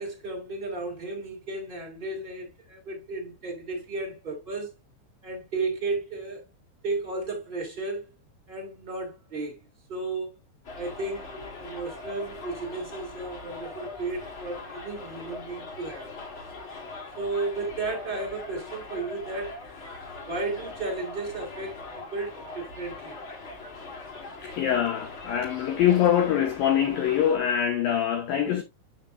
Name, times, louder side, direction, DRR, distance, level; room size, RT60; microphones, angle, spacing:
voice 1, 0.0-4.7 5.2-6.4 6.8-8.1 8.5-9.6 9.9-10.4 10.7-16.1 17.1-19.7 20.2-23.2, right 3 dB, 20° right, 1.4 m, -34 dB
Subway metro underground, 10.6-27.4, left 3 dB, 60° left, 1.3 m, -41 dB
voice 2, 24.4-28.6, left 9 dB, 80° left, 2.0 m, -24 dB
7.3 x 6.4 x 2.6 m
omnidirectional pair, 5.4 m